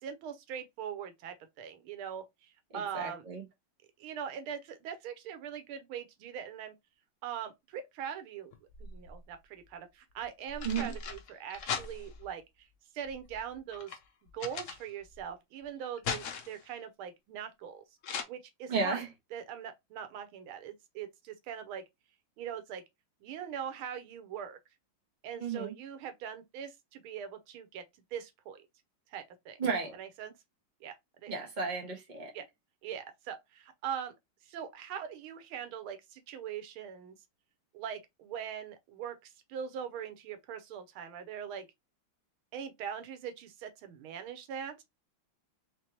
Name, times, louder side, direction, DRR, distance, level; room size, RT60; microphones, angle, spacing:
voice 1, 0.0-3.2 4.0-6.7 7.2-8.5 8.8-12.7 12.9-14.0 14.3-17.8 18.3-19.0 19.3-21.8 22.4-22.8 23.2-24.6 25.2-27.8 28.1-28.6 29.1-29.6 30.0-30.3 30.8-31.5 32.3-32.4 32.8-34.1 34.4-37.1 37.7-41.7 42.5-44.8, right 8 dB, 90° right, 1.7 m, -41 dB
voice 2, 2.7-3.4 10.6-10.9 18.7-19.1 25.3-25.7 29.6-29.9 31.3-32.3, right 5 dB, 25° right, 1.3 m, -33 dB
sound 1, 8.5-9.3 10.2-12.3 13.0-15.3 15.6-16.7 18.0-18.2, left 6 dB, 65° left, 0.7 m, -39 dB
4.5 x 3.3 x 2.8 m
omnidirectional pair, 2.2 m